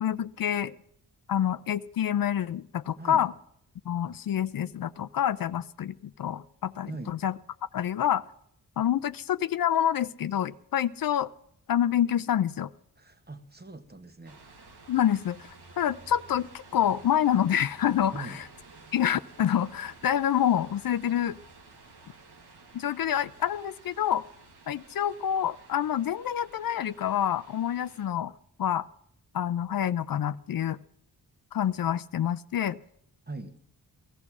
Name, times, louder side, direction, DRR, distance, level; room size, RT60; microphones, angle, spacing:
voice 1, 0.0-0.7 1.3-3.3 3.9-7.3 7.7-8.2 8.8-11.3 11.7-12.7 14.9-18.3 18.9-21.4 22.7-24.2 24.7-28.3 28.6-28.9 29.3-30.8 31.5-32.8, left 10 dB, 60° left, 0.5 m, -27 dB
voice 2, 6.9-7.2 13.0-14.4 18.1-18.5 33.3-33.6, right 3 dB, 25° right, 1.2 m, -41 dB
sound 1, 14.2-28.1, right 3 dB, 80° right, 1.7 m, -53 dB
18.0 x 13.5 x 6.0 m
cardioid pair, 70°, 39 cm